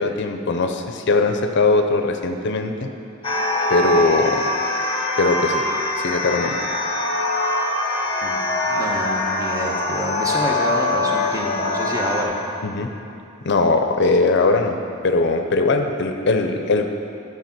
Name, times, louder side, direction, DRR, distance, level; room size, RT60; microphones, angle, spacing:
voice 1, 0.0-2.9 3.7-4.4 5.2-5.6 6.0-6.6 12.6-12.9 13.4-14.8 15.0-16.9, left 3 dB, 60° left, 5 dB, 0.6 m, -20 dB
sound 1, 3.2-12.2, left 2 dB, 30° left, 1.0 m, -23 dB
voice 2, 8.7-12.4, right 1 dB, 15° right, -1 dB, 1.0 m, -27 dB
12.0 x 4.8 x 5.9 m, 2.7 s
head